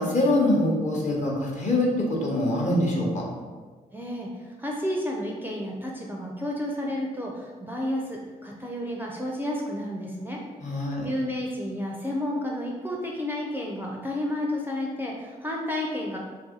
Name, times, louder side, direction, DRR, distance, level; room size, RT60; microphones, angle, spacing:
voice 1, 0.0-3.3 10.6-11.1, left 1 dB, 35° left, -2 dB, 1.0 m, -24 dB
voice 2, 3.9-10.4 10.7-16.2, left 1 dB, 10° right, -1 dB, 0.5 m, -31 dB
2.6 x 2.6 x 3.7 m, 1.4 s
hypercardioid pair, 40°, 20 cm